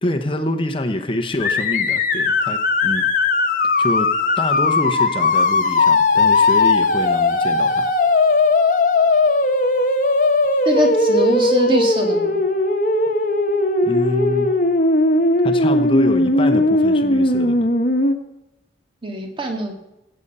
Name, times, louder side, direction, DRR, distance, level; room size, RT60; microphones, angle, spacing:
voice 1, 0.0-3.1 3.8-7.9 13.8-14.5 15.4-17.7, left 1 dB, 30° left, 6 dB, 0.9 m, -25 dB
sound 1, 1.4-18.1, left 2 dB, 45° left, 1.1 m, -18 dB
voice 2, 10.7-12.4 19.0-19.7, equal, 30° right, 2 dB, 2.0 m, -22 dB
16.5 x 8.8 x 5.5 m, 0.91 s
head